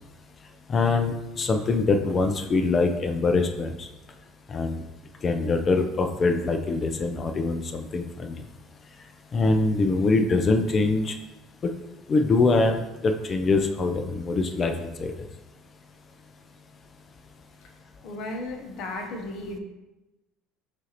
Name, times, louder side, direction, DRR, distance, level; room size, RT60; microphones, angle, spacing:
voice 1, 0.7-3.9 4.5-4.8 5.2-8.4 9.3-11.1 12.1-15.1, left 3 dB, 30° left, 6 dB, 0.4 m, -24 dB
voice 2, 18.0-19.6, left 2 dB, 55° left, 2 dB, 0.8 m, -34 dB
6.0 x 2.5 x 2.9 m, 1.0 s
cardioid pair, 125°, 0 cm